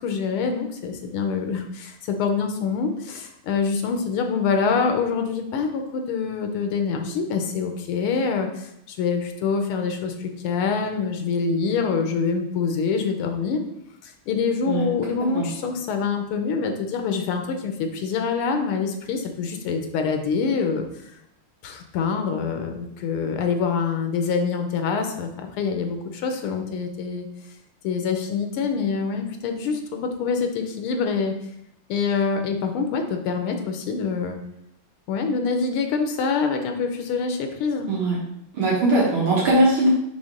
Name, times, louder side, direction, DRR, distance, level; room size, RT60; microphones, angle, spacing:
voice 1, 0.0-13.6 14.0-20.8 21.6-27.3 27.8-31.3 31.9-34.4 35.1-37.9, left 5 dB, 80° left, 5 dB, 1.7 m, -25 dB
voice 2, 37.9-38.2 38.5-39.9, right 2 dB, 70° right, -6 dB, 2.2 m, -20 dB
5.9 x 3.6 x 5.2 m, 0.78 s
omnidirectional pair, 2.4 m